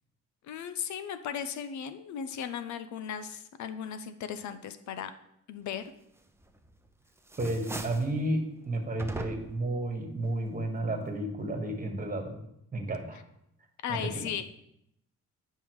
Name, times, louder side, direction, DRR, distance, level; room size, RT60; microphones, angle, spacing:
voice 1, 0.5-5.1 5.5-5.8 13.8-14.4, left 8 dB, 70° left, 11 dB, 0.6 m, -36 dB
sound 1, 6.4-6.9 7.2-8.1 9.0-9.7, right 2 dB, 10° right, 0.7 m, -39 dB
voice 2, 7.4-12.4 12.7-13.2 13.9-14.1, right 1 dB, 30° right, 3 dB, 1.5 m, -32 dB
10.0 x 5.4 x 3.1 m, 0.78 s
cardioid pair, 90°, 30 cm